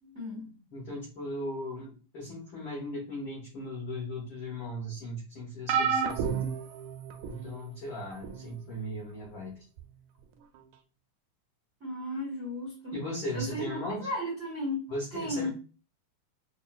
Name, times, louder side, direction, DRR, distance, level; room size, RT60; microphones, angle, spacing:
voice 1, 0.0-0.6 11.8-13.0 13.3-15.5, left 1 dB, 50° right, -4 dB, 0.9 m, -35 dB
voice 2, 0.7-6.4 7.2-9.6 12.9-14.1 14.9-15.5, left 1 dB, 75° left, -3 dB, 1.1 m, -37 dB
sound 1, 5.7-7.5 8.2-8.5 9.8-9.9, right 7 dB, 80° right, 1.8 m, -30 dB
6.0 x 2.3 x 2.3 m, 0.36 s
omnidirectional pair, 3.7 m